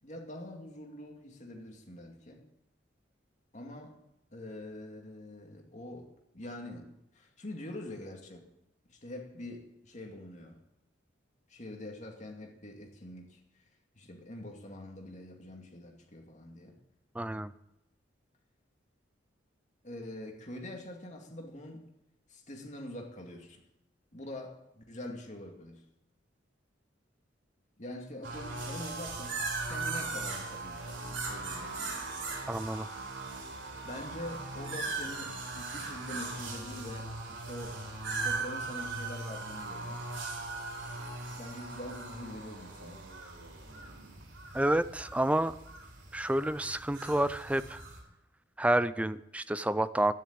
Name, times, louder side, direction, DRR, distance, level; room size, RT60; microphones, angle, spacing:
voice 1, 0.0-2.4 3.5-4.0 4.3-8.4 8.9-10.6 11.5-13.4 14.0-16.8 19.8-21.9 22.3-23.6 24.1-25.8 27.8-32.0 33.8-37.8 38.0-40.0 41.4-43.1, left 1 dB, 40° left, 2 dB, 2.4 m, -44 dB
voice 2, 17.1-17.5 32.5-32.9 44.5-45.5 46.1-47.8 48.6-50.1, right 1 dB, 5° right, 14 dB, 0.4 m, -29 dB
sound 1, 28.2-48.0, right 3 dB, 80° right, 4.1 m, -39 dB
12.5 x 10.5 x 8.7 m, 0.86 s
head